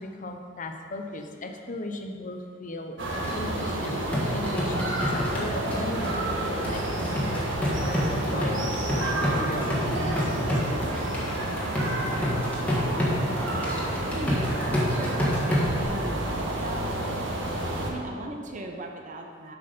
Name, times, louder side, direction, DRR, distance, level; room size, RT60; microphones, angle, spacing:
voice 1, 0.0-3.0 3.3-11.0, left 1 dB, 40° left, 4 dB, 0.7 m, -37 dB
sound 1, 3.0-17.9, right 1 dB, 70° right, 1.4 m, -30 dB
sound 2, 3.1-15.8, equal, 10° left, 1.5 m, -30 dB
voice 2, 13.1-16.8 17.9-19.6, right 1 dB, 40° right, 2 dB, 0.7 m, -38 dB
7.7 x 6.0 x 5.2 m, 2.1 s
head